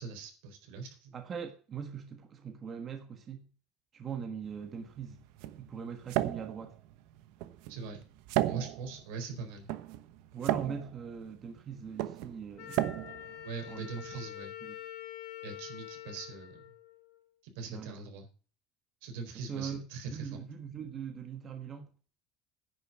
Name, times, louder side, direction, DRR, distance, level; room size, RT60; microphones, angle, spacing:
voice 1, 0.0-1.1 7.7-8.0 8.4-9.7 13.4-14.5 15.4-16.6 17.4-18.3 19.0-20.4, right 4 dB, 85° right, 4.2 m, -42 dB
voice 2, 1.1-3.4 3.9-5.2 5.6-6.8 10.3-12.9 13.7-13.9 14.1-14.2 14.6-14.7 17.6-18.0 19.5-19.8 20.1-21.9, right 7 dB, 25° right, 1.4 m, -41 dB
sound 1, 4.4-14.3, right 14 dB, 65° right, 1.0 m, -36 dB
Wind instrument woodwind instrument, 12.6-17.4, left 12 dB, 90° left, 3.1 m, -46 dB
10.5 x 6.8 x 7.4 m
cardioid pair, 180°, 0 cm